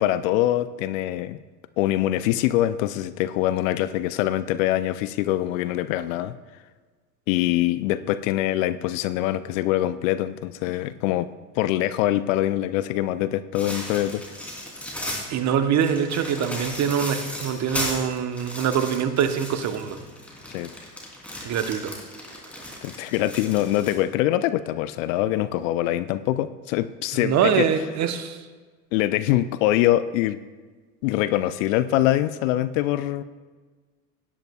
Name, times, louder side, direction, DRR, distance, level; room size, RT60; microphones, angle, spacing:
voice 1, 0.0-1.4 1.8-6.4 7.3-11.3 11.6-14.2 20.5-20.7 22.8-27.8 28.9-30.4 31.0-33.2, left 14 dB, 55° left, 14 dB, 0.6 m, -24 dB
sound 1, 13.5-15.3 15.8-23.9, left 1 dB, 5° left, 3.1 m, -35 dB
voice 2, 15.3-20.0 21.4-22.0 27.2-28.4, right 8 dB, 35° right, 8 dB, 1.0 m, -24 dB
17.5 x 10.5 x 2.3 m, 1.4 s
hypercardioid pair, 85°, 47 cm